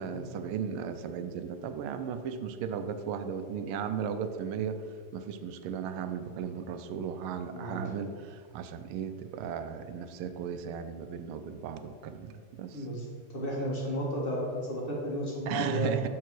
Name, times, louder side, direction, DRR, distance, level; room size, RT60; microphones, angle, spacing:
voice 1, 0.0-4.8 5.1-12.8 15.5-16.1, right 7 dB, 85° right, 9 dB, 1.5 m, -36 dB
voice 2, 12.7-15.9, equal, 25° left, -4 dB, 1.7 m, -33 dB
6.8 x 4.7 x 6.0 m, 2.1 s
omnidirectional pair, 2.3 m